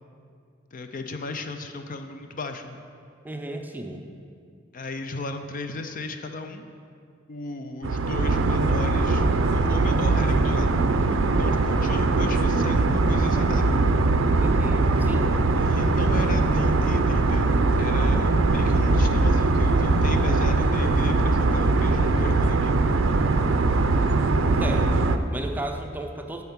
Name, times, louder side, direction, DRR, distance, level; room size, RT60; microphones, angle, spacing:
voice 1, 0.7-2.8 4.7-6.6 7.3-9.2 9.5-10.7 11.1-13.8 15.6-22.8, left 3 dB, 45° left, 7 dB, 0.5 m, -35 dB
voice 2, 3.2-4.0 14.4-15.3 24.6-26.4, right 1 dB, 10° right, 3 dB, 0.5 m, -34 dB
sound 1, 7.8-25.2, right 3 dB, 75° right, 0.5 m, -21 dB
9.3 x 4.4 x 7.2 m, 2.3 s
head